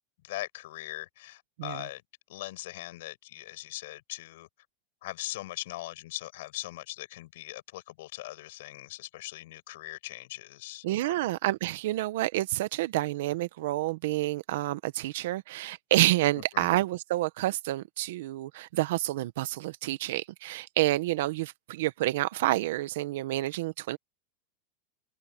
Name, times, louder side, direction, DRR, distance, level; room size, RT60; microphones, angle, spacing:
voice 1, 0.2-2.0 2.3-4.5 5.0-10.8 16.3-16.7, left 17 dB, 65° left, 6.5 m, -40 dB
voice 2, 10.8-24.0, right 16 dB, 65° right, 1.2 m, -29 dB
supercardioid pair, 150°, 0 cm